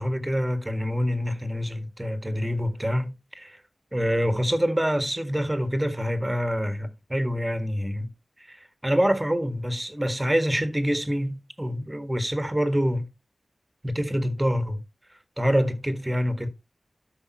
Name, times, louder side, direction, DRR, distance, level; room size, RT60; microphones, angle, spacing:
voice 1, 0.0-3.6 3.9-8.1 8.4-13.1 13.8-14.8 15.4-16.5, equal, 15° right, 1.6 m, -26 dB
12.5 x 5.5 x 2.9 m
cardioid pair, 50°, 0 cm